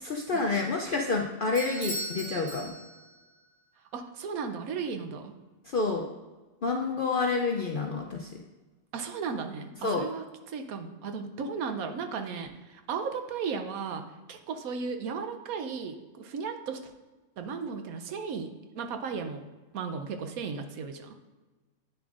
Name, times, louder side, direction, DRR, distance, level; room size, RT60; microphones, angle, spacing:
voice 1, 0.0-2.7 5.6-6.1 6.6-8.3 9.8-10.1, left 3 dB, 60° left, 1 dB, 0.5 m, -29 dB
Bell / Doorbell, 1.5-3.3, right 1 dB, 55° right, 2.4 m, -38 dB
voice 2, 3.9-5.3 8.9-14.0 14.3-16.8 17.4-18.5 18.7-19.4 19.7-21.1, right 5 dB, 75° right, 7 dB, 1.1 m, -35 dB
9.5 x 7.1 x 2.5 m, 1.2 s
omnidirectional pair, 1.5 m